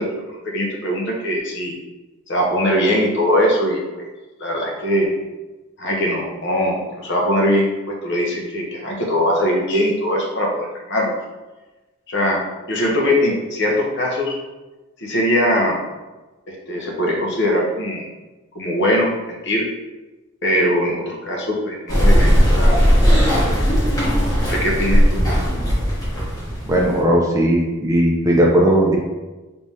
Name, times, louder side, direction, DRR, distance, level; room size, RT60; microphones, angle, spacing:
voice 1, 0.0-1.7 2.3-4.0 4.4-5.1 5.8-11.1 12.1-12.4 12.7-14.4 15.0-15.8 16.5-18.1 18.5-19.7 20.4-22.7 24.4-25.2, equal, 50° left, -1 dB, 0.7 m, -21 dB
sound 1, 21.9-27.0, equal, 15° left, 0.9 m, -17 dB
voice 2, 26.7-29.0, right 1 dB, 15° right, -2 dB, 0.5 m, -17 dB
3.5 x 3.2 x 2.7 m, 1.2 s
head